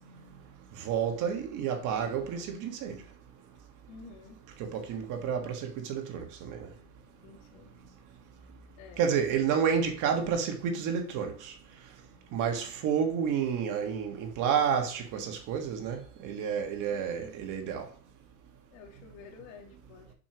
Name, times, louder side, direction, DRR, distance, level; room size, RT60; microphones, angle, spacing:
voice 1, 0.8-3.0 4.6-6.7 9.0-11.5 12.3-17.8, right 7 dB, 40° right, 1.6 m, -30 dB
voice 2, 3.9-4.4 7.2-7.7 8.8-9.0 16.9-17.3 18.7-20.1, left 5 dB, 55° left, 2.2 m, -51 dB
7.1 x 6.4 x 3.0 m
supercardioid pair, 140°, 47 cm